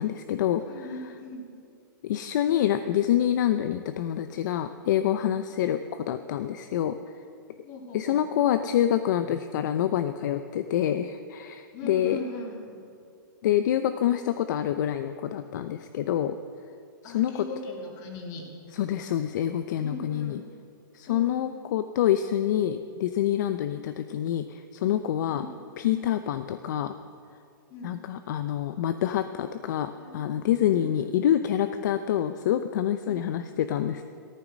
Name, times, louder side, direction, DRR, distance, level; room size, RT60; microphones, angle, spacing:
voice 1, 0.0-0.6 2.0-7.0 7.9-12.2 13.4-16.4 17.1-17.3 18.7-20.4 20.9-25.5 25.8-26.9 27.8-34.0, left 11 dB, 55° left, 9 dB, 0.6 m, -26 dB
voice 2, 0.6-1.5 7.6-8.2 11.7-12.8 17.0-18.5 19.8-20.4 21.1-21.5 25.3-25.6 27.7-27.9 29.9-30.4 30.7-31.1 33.0-33.3, left 2 dB, 35° left, 1 dB, 2.7 m, -39 dB
14.5 x 13.5 x 6.2 m, 2.4 s
hypercardioid pair, 150°, 11 cm